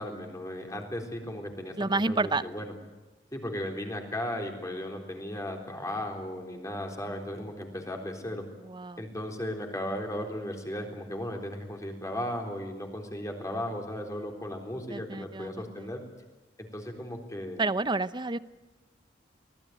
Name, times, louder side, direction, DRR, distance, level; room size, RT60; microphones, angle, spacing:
voice 1, 0.0-1.8 2.1-2.7 3.3-8.4 9.0-16.0 16.6-17.7, left 1 dB, 20° left, 2 dB, 3.9 m, -36 dB
voice 2, 1.8-2.4 8.7-9.0 14.9-15.6 17.6-18.4, right 3 dB, 25° right, 14 dB, 0.7 m, -29 dB
24.5 x 19.0 x 9.4 m, 1.1 s
head